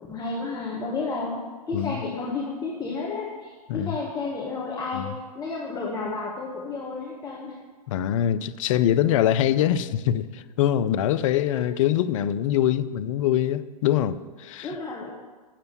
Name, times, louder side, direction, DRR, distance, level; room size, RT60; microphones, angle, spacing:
voice 1, 0.1-1.4 1.7-7.6 11.5-11.6 14.6-15.1, left 3 dB, 20° left, 1.4 m, -31 dB
voice 2, 7.9-14.8, left 11 dB, 55° left, 0.5 m, -24 dB
7.5 x 6.8 x 8.1 m
hypercardioid pair, 110°, 20 cm